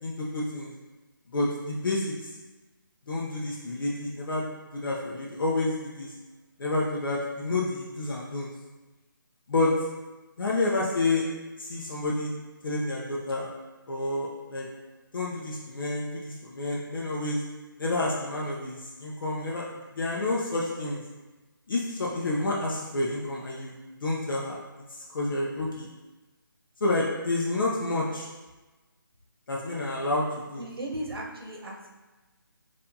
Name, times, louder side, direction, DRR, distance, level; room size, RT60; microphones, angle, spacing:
voice 1, 0.0-0.7 1.3-2.3 3.1-6.1 6.6-8.5 9.5-9.7 10.4-11.2 11.6-12.3 12.6-13.5 13.9-14.7 15.1-17.4 17.8-19.7 19.9-21.0 21.7-24.6 24.9-25.9 26.8-28.3 29.5-30.6, left 2 dB, 65° left, -4 dB, 0.7 m, -29 dB
voice 2, 30.6-31.9, right 1 dB, 90° right, -1 dB, 0.9 m, -36 dB
4.3 x 2.6 x 2.7 m, 1.2 s
hypercardioid pair, 165°, 12 cm